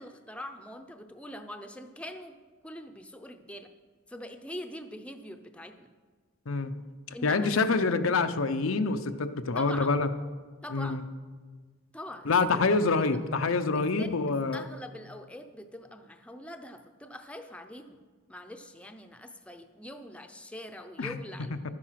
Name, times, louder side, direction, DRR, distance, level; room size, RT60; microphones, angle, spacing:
voice 1, 0.0-2.4 2.6-3.7 4.1-5.9 7.1-7.5 9.5-10.0 10.6-11.0 11.9-12.6 12.9-13.2 14.0-18.0 18.3-21.5, left 1 dB, 5° left, 7 dB, 0.6 m, -43 dB
voice 2, 7.2-10.1 10.7-11.0 12.3-14.6 21.0-21.2 21.6-21.7, left 4 dB, 90° left, 8 dB, 0.7 m, -26 dB
12.5 x 9.7 x 5.8 m, 1.5 s
head